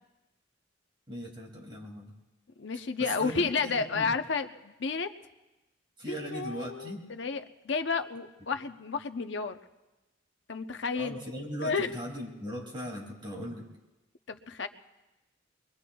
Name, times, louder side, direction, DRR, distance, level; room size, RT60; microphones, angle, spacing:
voice 1, 1.1-2.1 3.0-4.1 6.0-7.1 10.9-13.6, equal, 25° right, -2 dB, 2.4 m, -39 dB
voice 2, 2.6-5.1 6.1-9.6 10.5-11.2 11.6-11.9 14.3-14.7, left 4 dB, 70° left, 8 dB, 0.7 m, -31 dB
25.5 x 22.5 x 2.3 m, 1.0 s
head